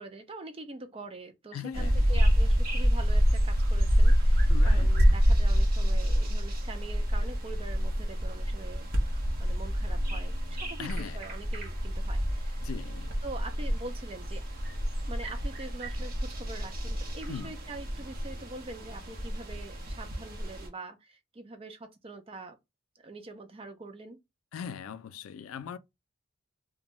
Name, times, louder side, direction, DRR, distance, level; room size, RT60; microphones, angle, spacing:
voice 1, 0.0-12.7 13.2-14.4 15.1-22.6 23.0-24.2, right 2 dB, 25° right, 0.4 m, -44 dB
voice 2, 1.5-2.0 4.5-4.9 10.8-11.2 12.6-13.2 17.3-17.5 24.5-25.8, left 7 dB, 90° left, 0.3 m, -40 dB
sound 1, 1.7-20.7, equal, 45° right, 0.8 m, -27 dB
2.6 x 2.2 x 2.9 m
head